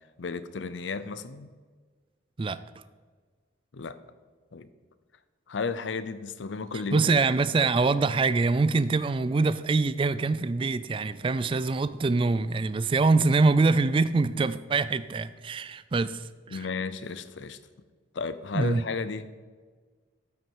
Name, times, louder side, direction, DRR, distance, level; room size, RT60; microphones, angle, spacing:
voice 1, 0.2-1.5 3.7-4.0 4.5-4.7 5.5-7.1 16.5-17.6 18.1-19.3, left 4 dB, 75° left, 13 dB, 0.6 m, -33 dB
voice 2, 6.9-16.6 18.5-18.8, right 3 dB, 25° right, 15 dB, 0.3 m, -24 dB
12.5 x 6.1 x 4.7 m, 1.5 s
head